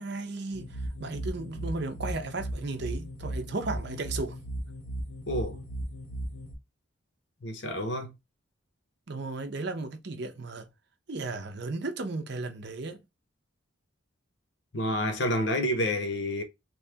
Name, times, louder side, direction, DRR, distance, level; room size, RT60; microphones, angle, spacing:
voice 1, 0.0-4.4 9.1-10.7 11.1-13.0, right 3 dB, 55° right, 0.6 m, -35 dB
sound 1, 0.5-6.5, right 1 dB, 85° left, 1.0 m, -36 dB
voice 2, 5.3-5.6 7.4-8.1 14.7-16.4, left 1 dB, 55° left, 0.9 m, -29 dB
3.1 x 2.8 x 3.4 m
head